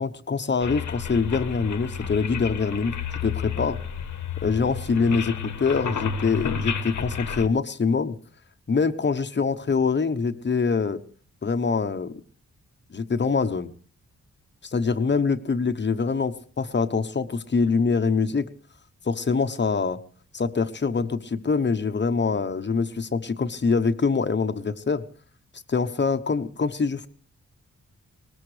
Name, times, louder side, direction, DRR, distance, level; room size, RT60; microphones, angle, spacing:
voice 1, 0.0-2.9 3.2-3.8 4.4-8.2 8.7-11.0 11.4-12.2 12.9-13.7 14.6-18.5 19.0-20.0 20.3-25.0 25.7-27.1, left 5 dB, 35° left, 10 dB, 1.0 m, -24 dB
sound 1, 0.6-7.5, left 6 dB, 75° left, 1.2 m, -31 dB
20.0 x 20.0 x 3.3 m, 0.42 s
wide cardioid pair, 130°, 30 cm